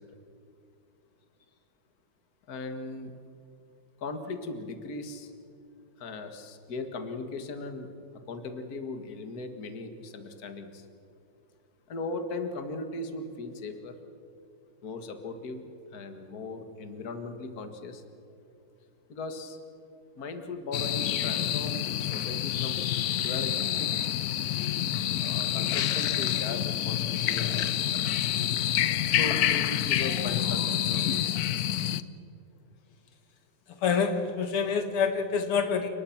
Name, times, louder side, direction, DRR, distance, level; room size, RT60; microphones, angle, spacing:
voice 1, 2.5-3.1 4.0-5.3 6.0-7.9 8.3-10.8 11.9-13.9 14.8-15.6 15.9-18.0 19.1-19.6 20.2-23.9 25.2-28.2 29.1-31.2, left 3 dB, 45° left, 7 dB, 2.1 m, -38 dB
sound 1, 20.7-32.0, left 11 dB, 70° left, 0.9 m, -28 dB
voice 2, 33.8-35.9, left 6 dB, 90° left, 7 dB, 2.8 m, -26 dB
30.0 x 20.0 x 6.0 m, 2.6 s
omnidirectional pair, 2.4 m